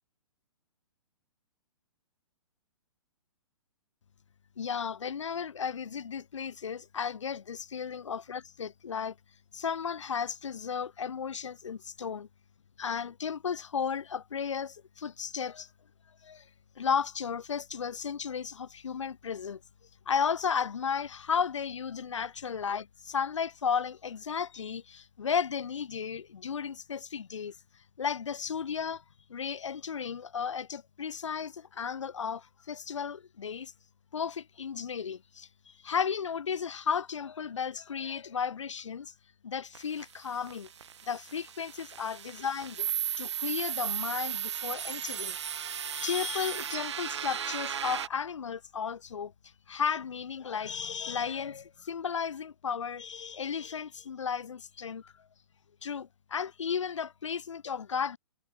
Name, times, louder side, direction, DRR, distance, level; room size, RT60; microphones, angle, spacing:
voice 1, 4.6-9.2 9.5-12.3 12.8-15.7 16.2-16.5 16.8-19.6 20.0-27.6 28.0-29.0 29.3-33.7 34.1-39.1 39.4-40.7 41.1-42.9 43.2-45.4 45.9-49.3 49.7-55.1 55.8-58.2, left 7 dB, 60° left, 1.5 m, -34 dB
sound 1, 39.8-48.1, right 8 dB, 55° right, 1.3 m, -35 dB
figure-of-eight pair, 120°, 17 cm